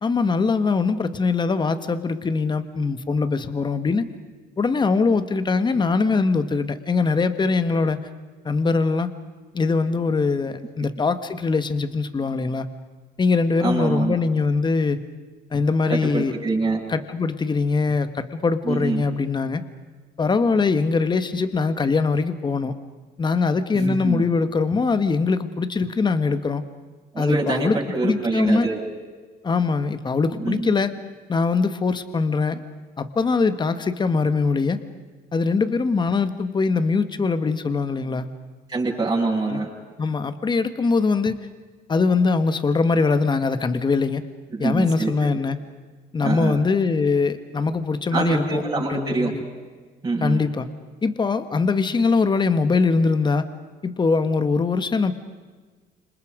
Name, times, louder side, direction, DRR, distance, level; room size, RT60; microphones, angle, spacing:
voice 1, 0.0-4.0 4.6-8.0 8.4-9.1 9.5-12.7 13.2-15.0 15.5-16.3 16.9-19.6 20.2-22.7 23.2-26.6 27.2-27.8 28.0-28.7 29.4-30.9 31.3-32.6 33.0-34.8 35.3-38.3 39.5-39.6 40.0-41.4 41.9-44.2 44.6-45.6 46.1-48.6 48.9-49.4 50.2-50.7 51.0-53.5 53.8-55.1, left 4 dB, 25° left, 10 dB, 1.7 m, -22 dB
voice 2, 13.6-14.2 15.9-16.8 18.6-19.0 23.7-24.2 27.1-28.8 30.4-30.7 38.7-39.7 44.5-45.4 46.2-46.6 48.1-49.3 50.0-50.4, right 3 dB, 20° right, -5 dB, 7.7 m, -25 dB
29.5 x 27.0 x 5.2 m, 1.4 s
cardioid pair, 110°, 17 cm